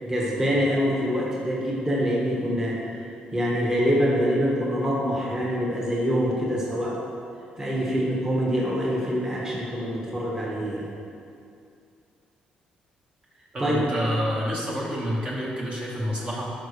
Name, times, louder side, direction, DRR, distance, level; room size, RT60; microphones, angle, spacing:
voice 1, 0.0-2.9 3.3-7.0 7.6-10.9 13.6-13.8, equal, 20° right, -4 dB, 1.6 m, -25 dB
voice 2, 13.5-16.5, equal, 35° right, -4 dB, 1.6 m, -28 dB
12.0 x 5.3 x 3.3 m, 2.5 s
cardioid pair, 95°, 3 cm